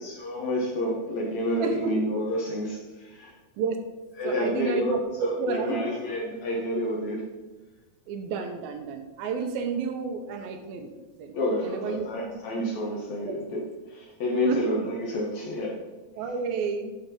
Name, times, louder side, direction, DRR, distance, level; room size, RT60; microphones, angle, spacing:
voice 1, 0.0-3.3 4.2-7.2 11.3-13.6 13.9-15.8, equal, 60° left, -2 dB, 2.1 m, -29 dB
voice 2, 1.6-1.9 3.6-3.8 4.2-5.9 8.1-11.3 11.6-12.3 13.2-13.4 14.5-14.6 16.2-16.9, right 5 dB, 80° right, 6 dB, 2.5 m, -31 dB
11.5 x 4.4 x 5.3 m, 1.1 s
omnidirectional pair, 4.4 m